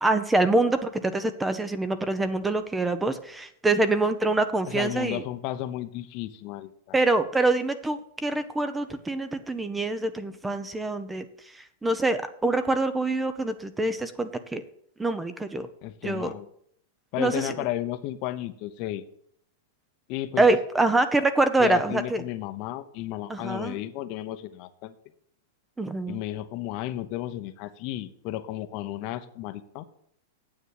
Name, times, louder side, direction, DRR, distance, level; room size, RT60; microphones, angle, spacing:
voice 1, 0.0-5.2 6.9-14.6 15.0-15.7 16.0-16.3 17.2-17.5 20.4-22.2 23.3-23.8 25.8-26.2, right 2 dB, 10° right, 11 dB, 0.7 m, -25 dB
voice 2, 4.7-7.0 15.8-16.5 17.1-19.0 20.1-20.5 21.6-24.9 26.1-29.8, left 14 dB, 45° left, 11 dB, 0.8 m, -33 dB
9.4 x 7.2 x 6.5 m, 0.67 s
supercardioid pair, 145°, 0 cm